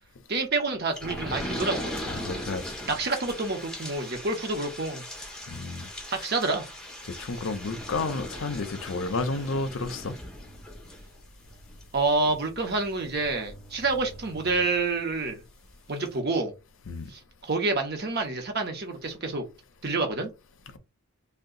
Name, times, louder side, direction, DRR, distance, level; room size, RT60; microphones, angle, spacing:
voice 1, 0.3-2.0 2.8-5.0 6.1-6.6 11.9-15.4 15.9-16.5 17.1-19.4 19.8-20.3, right 3 dB, 45° right, 0.8 m, -28 dB
sound 1, 0.9-15.3 15.7-15.8 16.0-16.1, equal, 5° left, 0.7 m, -39 dB
voice 2, 2.1-2.8 5.5-5.9 7.0-10.2 16.9-17.1, left 3 dB, 65° left, 0.6 m, -31 dB
2.7 x 2.2 x 3.7 m
head